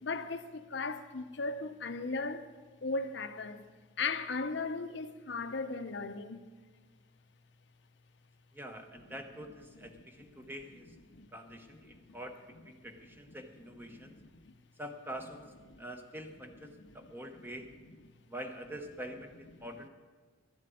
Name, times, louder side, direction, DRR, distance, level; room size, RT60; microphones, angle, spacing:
voice 1, 0.0-2.5 2.8-3.6 4.0-6.4 10.4-10.5 11.1-11.3 11.8-12.1 13.9-14.5 15.7-15.8 16.8-17.1 17.4-17.5 19.6-19.7, left 3 dB, 60° left, 0.7 m, -37 dB
voice 2, 8.5-10.9 11.3-14.1 14.8-15.5 15.8-17.7 18.3-19.9, right 1 dB, 10° right, 1.0 m, -45 dB
12.5 x 7.6 x 9.2 m
head